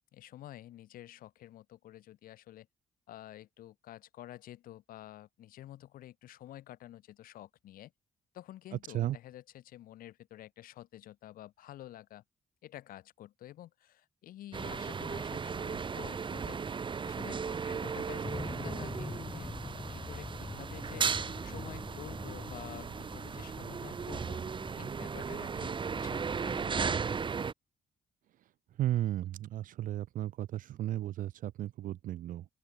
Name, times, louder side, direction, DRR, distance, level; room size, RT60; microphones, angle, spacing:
voice 1, 0.1-2.7 3.1-7.9 8.3-12.2 12.6-16.6 17.0-24.4 24.8-26.8, left 13 dB, 80° left, 1.5 m, -50 dB
sound 1, 14.5-27.5, right 5 dB, 35° right, 0.8 m, -36 dB
sound 2, 18.2-26.6, left 3 dB, 25° left, 2.0 m, -45 dB
voice 2, 28.8-32.5, right 13 dB, 70° right, 0.4 m, -34 dB
open air
cardioid pair, 70°, 14 cm